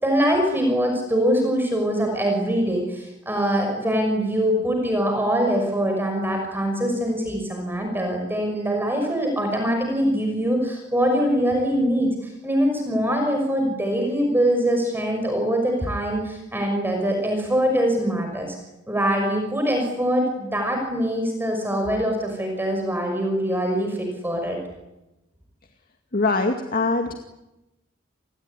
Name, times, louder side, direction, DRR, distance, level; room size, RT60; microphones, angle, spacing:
voice 1, 0.0-18.6 18.9-24.6, equal, 10° right, 3 dB, 5.7 m, -23 dB
voice 2, 26.1-27.1, left 3 dB, 45° left, 4 dB, 2.2 m, -22 dB
29.5 x 20.0 x 9.9 m, 0.98 s
head